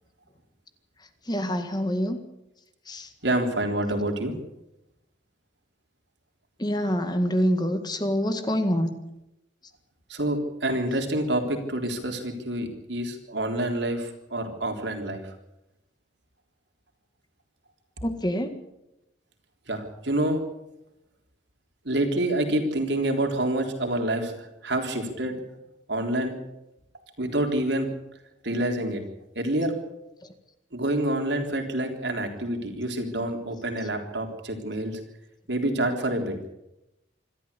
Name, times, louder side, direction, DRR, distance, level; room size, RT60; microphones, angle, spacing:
voice 1, 1.3-2.2 2.9-3.1 6.6-8.9 18.0-18.5, equal, 20° left, 8 dB, 1.8 m, -26 dB
voice 2, 3.2-4.4 10.1-15.2 19.7-20.4 21.9-25.3 25.9-26.4 27.2-27.9 28.4-29.0 29.4-29.7 30.7-35.0 35.5-36.3, right 1 dB, 70° right, 3 dB, 3.7 m, -27 dB
26.5 x 13.0 x 8.4 m, 0.91 s
head